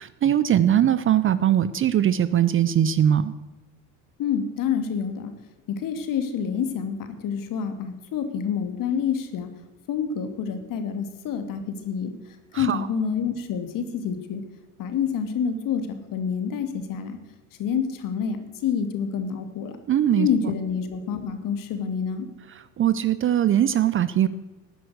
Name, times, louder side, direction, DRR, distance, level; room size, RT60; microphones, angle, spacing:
voice 1, 0.0-3.3 12.5-12.9 19.9-20.3 22.5-24.3, right 10 dB, 30° right, 15 dB, 0.7 m, -21 dB
voice 2, 4.2-5.3 5.7-9.5 9.9-12.1 12.5-14.4 14.8-17.2 17.6-19.8 20.2-22.3, left 7 dB, 45° left, 8 dB, 2.5 m, -27 dB
18.5 x 10.5 x 6.4 m, 1.1 s
figure-of-eight pair, 70°, 44 cm